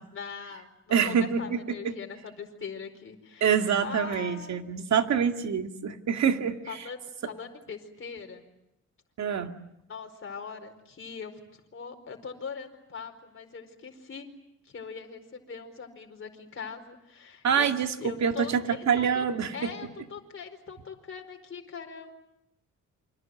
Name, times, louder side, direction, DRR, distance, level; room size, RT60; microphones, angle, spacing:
voice 1, 0.1-3.5 3.8-4.6 6.7-8.4 9.9-14.3 14.6-17.7 18.0-19.3 19.5-22.1, left 6 dB, 40° left, 3 dB, 4.6 m, -41 dB
voice 2, 0.9-1.9 3.4-6.8 9.2-9.5 17.4-19.7, right 7 dB, 60° right, 6 dB, 2.3 m, -26 dB
29.0 x 25.5 x 7.8 m, 0.85 s
cardioid pair, 130°, 31 cm